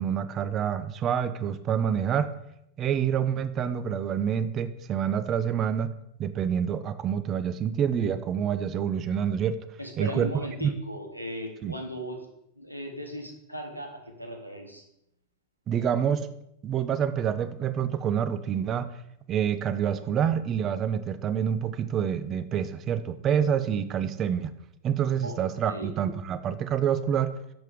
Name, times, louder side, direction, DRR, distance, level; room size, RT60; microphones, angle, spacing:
voice 1, 0.0-2.3 2.8-5.9 6.2-9.6 10.0-10.7 11.6-11.7 15.7-16.3 16.6-18.9 19.3-24.5 24.8-27.3, right 8 dB, 30° right, 12 dB, 0.4 m, -27 dB
voice 2, 9.8-12.2 12.6-14.8 25.2-25.9, equal, 90° left, 3 dB, 0.9 m, -37 dB
5.3 x 5.2 x 3.6 m, 0.78 s
figure-of-eight pair, 90°, 0 cm